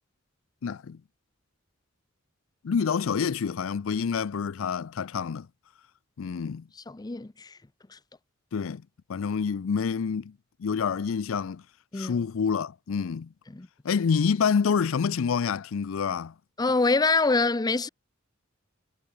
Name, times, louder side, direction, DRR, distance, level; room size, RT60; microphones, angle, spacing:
voice 1, 0.6-1.0 2.6-5.5 6.2-6.7 8.5-8.8 9.1-10.3 10.6-11.6 11.9-13.3 13.8-16.3, left 6 dB, 70° left, 0.4 m, -27 dB
voice 2, 6.9-7.6 7.9-8.0 11.9-12.1 13.5-13.7 16.6-17.9, left 3 dB, 20° left, 0.5 m, -25 dB
head